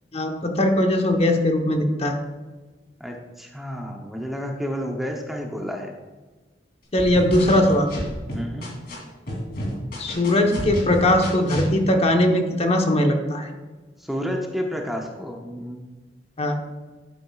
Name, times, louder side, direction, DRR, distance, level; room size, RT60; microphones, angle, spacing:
voice 1, 0.1-2.2 6.9-7.9 10.0-13.5 16.4-16.6, left 1 dB, 35° left, 4 dB, 1.0 m, -20 dB
voice 2, 3.0-5.9 8.3-8.7 14.0-15.9, equal, ahead, 1 dB, 0.8 m, -30 dB
sound 1, 7.0-8.9 9.3-11.7, equal, 55° left, 3.0 m, -30 dB
11.5 x 8.7 x 2.4 m, 1.3 s
head